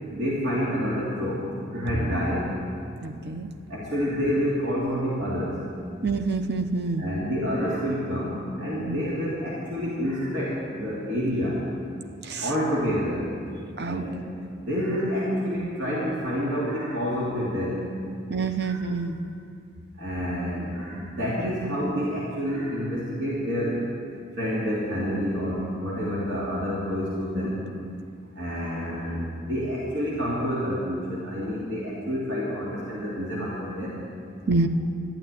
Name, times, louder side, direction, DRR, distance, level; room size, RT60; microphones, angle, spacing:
voice 1, 0.1-2.5 3.7-5.6 7.0-11.6 12.4-13.3 13.8-14.2 14.7-17.9 18.6-18.8 20.0-23.8 24.4-27.6 28.3-34.0, equal, 80° right, -7 dB, 2.9 m, -28 dB
voice 2, 3.0-3.5 6.0-7.0 8.9-9.0 12.2-12.5 13.8-14.0 18.3-19.2 34.5-34.7, right 3 dB, 55° right, 8 dB, 0.8 m, -27 dB
12.0 x 12.0 x 9.1 m, 2.5 s
head